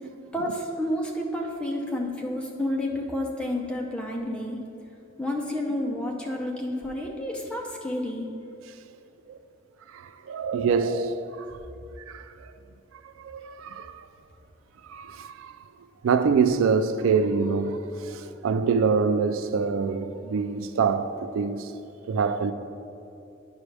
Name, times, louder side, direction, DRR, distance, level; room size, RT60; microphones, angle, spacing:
voice 1, 0.3-4.6 5.2-8.3, left 1 dB, 5° left, 0.6 m, -30 dB
voice 2, 9.9-11.6 12.1-12.3 13.2-14.0 14.9-15.6 16.0-21.7 22.1-22.5, right 5 dB, 80° right, 0.3 m, -25 dB
9.3 x 5.2 x 3.3 m
head